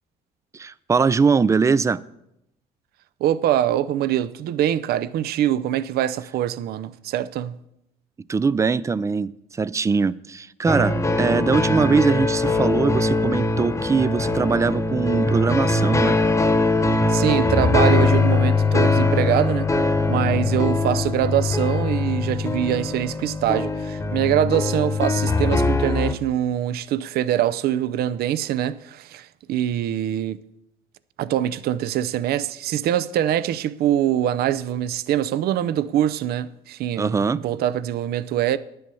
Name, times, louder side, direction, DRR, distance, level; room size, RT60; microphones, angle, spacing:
voice 1, 0.5-2.0 8.3-16.2 37.0-37.4, right 5 dB, 20° right, 0.3 m, -21 dB
voice 2, 3.2-7.6 17.1-30.4 31.2-38.6, right 11 dB, 65° right, 0.5 m, -24 dB
sound 1, 10.7-26.1, left 3 dB, 20° left, 1.1 m, -21 dB
10.5 x 7.8 x 6.9 m
cardioid pair, 110°, 17 cm